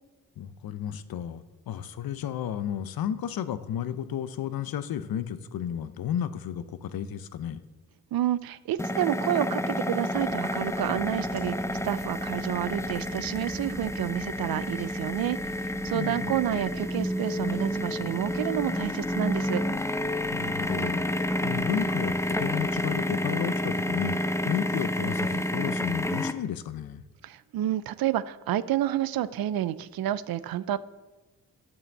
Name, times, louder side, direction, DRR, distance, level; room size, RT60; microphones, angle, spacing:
voice 1, 0.4-7.6 15.9-16.3 20.3-27.0, left 9 dB, 80° left, 13 dB, 0.7 m, -33 dB
voice 2, 8.1-11.5 11.8-19.6 27.2-30.8, right 12 dB, 80° right, 16 dB, 0.5 m, -29 dB
sound 1, 8.8-26.3, left 1 dB, 10° left, 0.6 m, -30 dB
sound 2, 10.1-23.0, right 2 dB, 35° right, 2.5 m, -48 dB
9.6 x 5.6 x 7.6 m, 1.2 s
cardioid pair, 70°, 35 cm